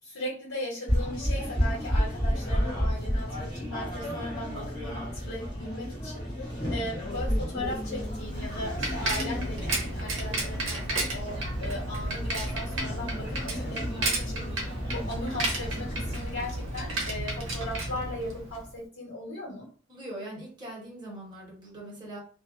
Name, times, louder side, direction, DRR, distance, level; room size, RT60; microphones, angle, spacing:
voice 1, 0.0-14.5 14.9-19.7, left 1 dB, 90° left, -6 dB, 1.2 m, -38 dB
sound 1, 0.9-16.2, equal, 20° left, 1.0 m, -32 dB
Bicycle, 7.8-18.7, right 2 dB, 65° right, 0.7 m, -33 dB
voice 2, 19.9-22.2, right 1 dB, 20° right, -4 dB, 1.0 m, -41 dB
2.4 x 2.3 x 2.4 m, 0.40 s
head